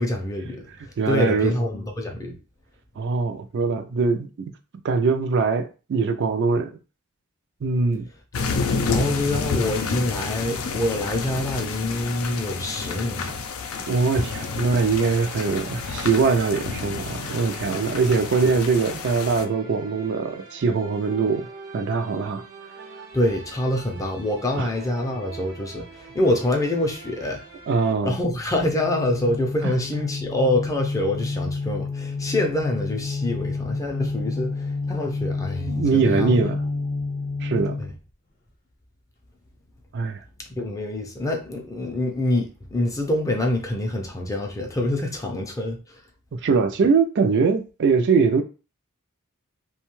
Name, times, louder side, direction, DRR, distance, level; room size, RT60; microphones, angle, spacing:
voice 1, 0.0-2.4 8.8-13.5 23.1-27.4 28.0-36.4 37.8-37.9 40.4-46.0, left 1 dB, 15° left, 0.4 m, -26 dB
voice 2, 1.0-1.5 3.0-4.3 4.8-6.7 7.6-8.1 13.9-21.5 21.7-22.4 24.6-24.7 27.7-28.2 29.6-29.7 35.7-36.6 37.4-37.8 39.9-40.2 46.3-48.4, right 4 dB, 55° right, 0.4 m, -22 dB
sound 1, 8.3-19.4, left 4 dB, 80° left, 0.4 m, -30 dB
sound 2, 14.1-27.9, right 4 dB, 80° right, 1.0 m, -43 dB
sound 3, 28.6-38.0, left 3 dB, 40° left, 0.8 m, -29 dB
2.7 x 2.2 x 3.0 m
head